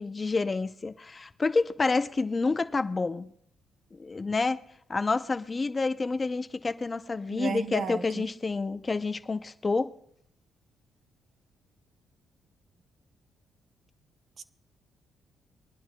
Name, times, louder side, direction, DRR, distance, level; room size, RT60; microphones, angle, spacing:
voice 1, 0.0-3.3 3.9-4.6 4.9-9.9, left 3 dB, 30° left, 0.6 m, -28 dB
voice 2, 7.3-8.3 14.4-14.5, right 6 dB, 60° right, 0.7 m, -34 dB
24.0 x 10.0 x 2.2 m
cardioid pair, 90°, 0 cm